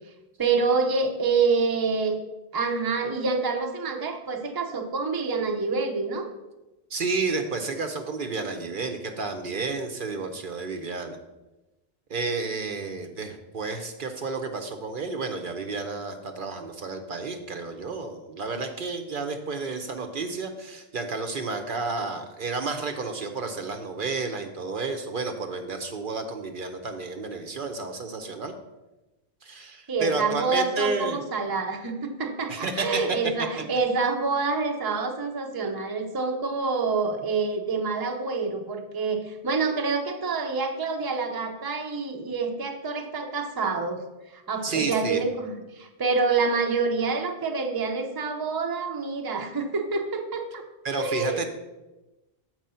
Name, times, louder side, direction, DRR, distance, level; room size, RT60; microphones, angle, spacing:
voice 1, 0.4-2.2 2.5-6.3 29.9-44.0 44.3-50.6 51.0-51.5, right 4 dB, 25° right, 4 dB, 0.6 m, -27 dB
voice 2, 6.9-11.2 12.1-28.5 29.4-31.2 32.5-33.2 44.6-45.2 50.8-51.5, right 4 dB, 60° right, 6 dB, 0.8 m, -31 dB
7.5 x 4.7 x 5.5 m, 1.1 s
omnidirectional pair, 1.1 m